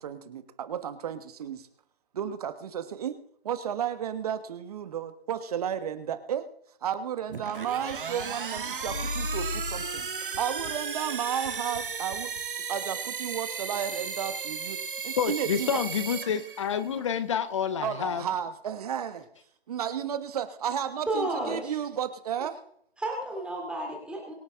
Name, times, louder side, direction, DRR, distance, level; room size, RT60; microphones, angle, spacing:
voice 1, 0.0-1.7 2.1-3.2 3.4-6.5 6.8-10.1 10.4-12.3 12.7-15.7 17.8-19.3 19.7-22.6, right 9 dB, 35° right, 1.4 m, -33 dB
sound 1, 7.3-12.4, left 3 dB, 60° left, 3.4 m, -39 dB
sound 2, 7.3-17.0, right 6 dB, 55° right, 1.7 m, -35 dB
voice 2, 15.2-18.2, left 8 dB, 30° left, 0.8 m, -28 dB
voice 3, 21.1-21.7 23.0-24.3, right 1 dB, 5° right, 2.9 m, -32 dB
23.5 x 8.8 x 3.8 m
figure-of-eight pair, 140°, 31 cm